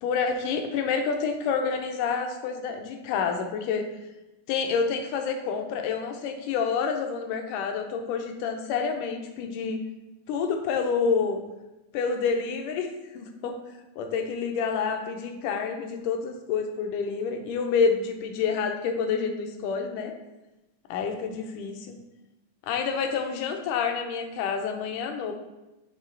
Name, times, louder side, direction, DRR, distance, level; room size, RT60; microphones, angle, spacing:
voice 1, 0.0-3.9 4.5-9.8 10.3-11.4 11.9-13.5 14.0-20.1 20.9-22.0 22.7-25.3, left 5 dB, 80° left, 5 dB, 2.1 m, -28 dB
6.8 x 3.3 x 4.5 m, 1.0 s
omnidirectional pair, 3.8 m